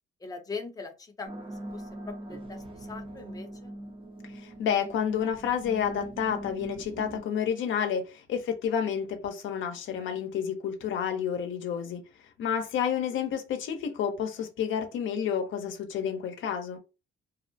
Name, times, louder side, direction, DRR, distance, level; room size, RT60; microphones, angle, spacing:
voice 1, 0.2-3.7, left 4 dB, 20° left, 0.6 m, -41 dB
sound 1, 1.3-7.2, right 1 dB, 25° right, 0.6 m, -42 dB
voice 2, 4.3-12.0 12.4-16.8, left 8 dB, 75° left, 0.6 m, -30 dB
2.6 x 2.0 x 2.6 m
cardioid pair, 90°, 20 cm